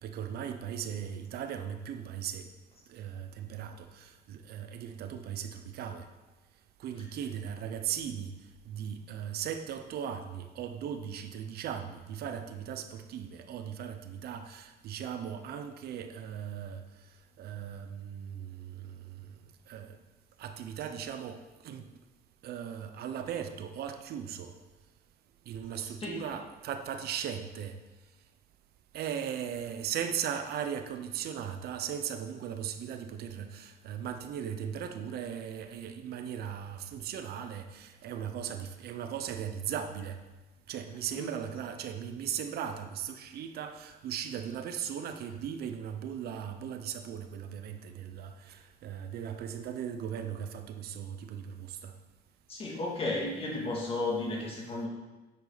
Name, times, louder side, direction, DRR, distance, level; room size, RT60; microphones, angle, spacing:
voice 1, 0.0-2.5 2.9-6.1 6.8-8.3 8.7-16.8 17.4-19.3 19.7-20.0 20.4-21.9 22.4-24.5 25.5-27.8 28.9-40.2 40.7-51.9, right 8 dB, 70° right, 7 dB, 0.8 m, -38 dB
voice 2, 25.8-26.2 41.1-41.3 52.5-54.9, left 2 dB, 35° left, -2 dB, 2.7 m, -34 dB
9.7 x 7.9 x 4.1 m, 1.1 s
cardioid pair, 110°, 17 cm